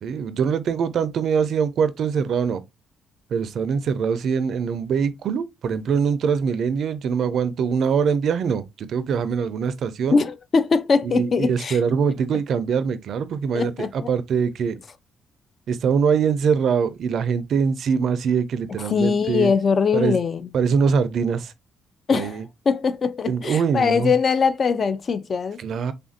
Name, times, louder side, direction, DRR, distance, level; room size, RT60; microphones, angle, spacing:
voice 1, 0.0-2.6 3.3-10.2 11.0-14.8 15.7-19.5 19.9-20.2 20.5-21.5 22.1-22.4 23.3-24.1 25.6-25.9, right 6 dB, 65° right, 0.4 m, -23 dB
voice 2, 10.1-11.8 13.5-14.1 18.8-20.5 22.1-25.6, left 5 dB, 45° left, 0.3 m, -22 dB
3.4 x 2.5 x 2.5 m
cardioid pair, 90°, 0 cm